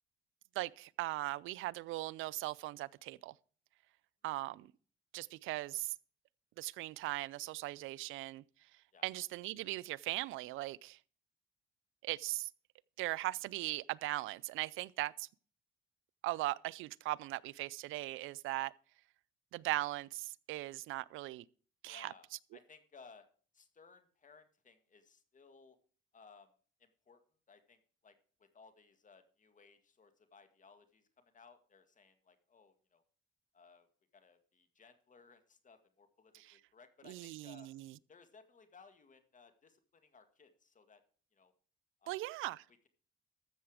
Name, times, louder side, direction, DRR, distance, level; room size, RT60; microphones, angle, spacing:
voice 1, 0.6-3.3 4.2-4.7 5.1-5.9 6.6-8.4 9.0-11.0 12.0-12.5 13.0-15.3 16.2-18.7 19.5-21.4 21.8-22.1 36.3-36.6 37.1-37.9 42.1-42.6, right 18 dB, 90° right, 0.4 m, -39 dB
voice 2, 21.9-23.3 23.5-25.8 26.1-26.5 26.8-27.2 27.5-33.0 33.5-33.9 34.1-37.7 38.1-41.0 41.3-41.5 42.0-42.2, left 5 dB, 40° left, 1.9 m, -61 dB
13.5 x 7.0 x 4.8 m
cardioid pair, 90°, 20 cm